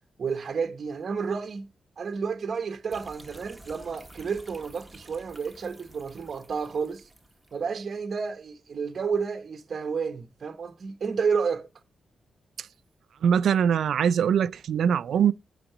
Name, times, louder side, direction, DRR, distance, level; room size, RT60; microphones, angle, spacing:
voice 1, 0.2-1.7 2.0-7.1 7.5-11.7, right 5 dB, 55° right, 1.0 m, -31 dB
sound 1, 2.9-7.7, right 1 dB, 5° right, 1.4 m, -51 dB
voice 2, 13.2-15.3, right 8 dB, 80° right, 0.4 m, -22 dB
8.8 x 4.1 x 6.6 m
cardioid pair, 85°, 0 cm